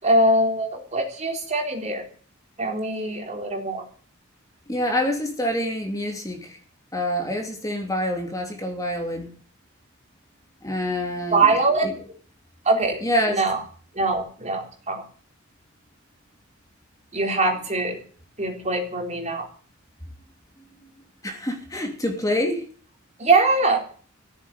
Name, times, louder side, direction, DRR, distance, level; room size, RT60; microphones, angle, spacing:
voice 1, 0.0-2.1 2.6-3.8 11.3-11.8 12.6-13.0 13.3-13.6 13.9-15.0 17.1-18.0 18.4-19.5 23.2-23.8, right 2 dB, 35° right, 3.8 m, -22 dB
voice 2, 4.7-6.6 6.9-9.3 10.6-11.5 13.0-13.4 20.8-20.9 21.2-22.6, left 1 dB, 15° left, 3.0 m, -26 dB
15.5 x 9.9 x 7.0 m
head